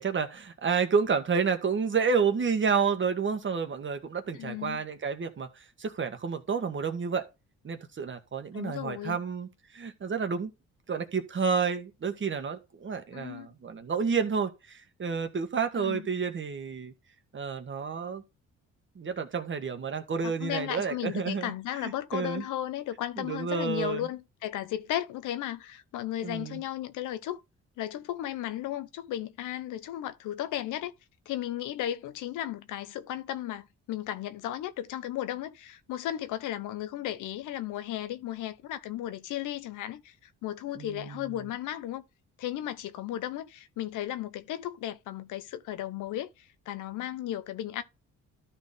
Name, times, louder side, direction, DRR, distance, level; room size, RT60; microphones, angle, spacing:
voice 1, 0.0-7.3 7.6-10.5 10.9-16.9 17.3-18.2 18.9-21.5 21.8-22.4 23.2-24.1 26.2-26.6 40.8-41.4, right 6 dB, 40° right, 1.6 m, -30 dB
voice 2, 4.3-4.8 8.5-9.2 13.1-13.5 15.8-16.1 20.2-27.4 27.8-30.9 31.3-42.0 42.4-47.8, left 12 dB, 90° left, 0.9 m, -35 dB
12.5 x 4.3 x 3.7 m
cardioid pair, 90°, 30 cm